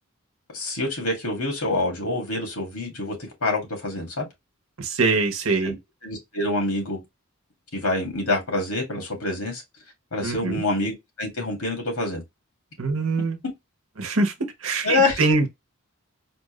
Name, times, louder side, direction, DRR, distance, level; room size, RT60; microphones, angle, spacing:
voice 1, 0.5-3.2 3.4-4.3 5.6-5.8 6.0-7.0 7.7-9.6 10.1-12.2 14.8-15.2, left 2 dB, 85° left, 2.3 m, -26 dB
voice 2, 4.8-5.7 10.2-10.6 12.8-13.4 14.0-14.3 14.6-15.5, right 3 dB, 65° right, 1.0 m, -23 dB
4.4 x 2.6 x 3.1 m
head